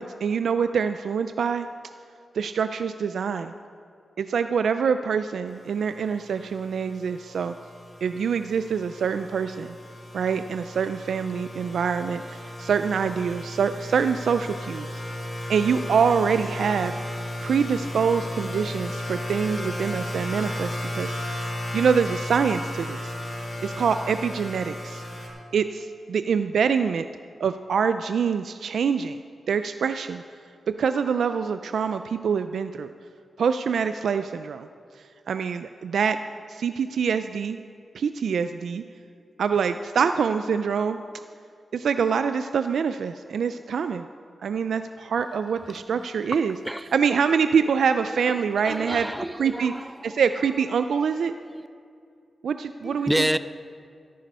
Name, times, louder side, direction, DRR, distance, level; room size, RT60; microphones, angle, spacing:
voice 1, 0.0-1.7 2.3-3.5 4.2-7.5 8.0-9.8 10.1-15.0 15.5-17.0 17.4-21.1 21.7-23.1 23.6-25.0 25.5-27.1 27.4-29.2 29.5-30.2 30.8-32.9 33.4-34.7 35.3-36.2 36.5-37.6 37.9-38.8 39.4-41.0 41.7-44.1 44.4-46.5 46.9-49.1 49.4-49.7 50.0-51.3 52.4-53.4, right 6 dB, 85° right, 10 dB, 0.3 m, -25 dB
sound 1, 5.5-25.3, left 1 dB, 35° left, 4.0 m, -34 dB
voice 2, 45.7-46.1 46.6-46.9 48.2-50.2 51.2-51.7 52.8-53.4, right 1 dB, 5° right, 14 dB, 0.3 m, -30 dB
13.5 x 10.0 x 5.4 m, 2.4 s
wide cardioid pair, 105°, 0 cm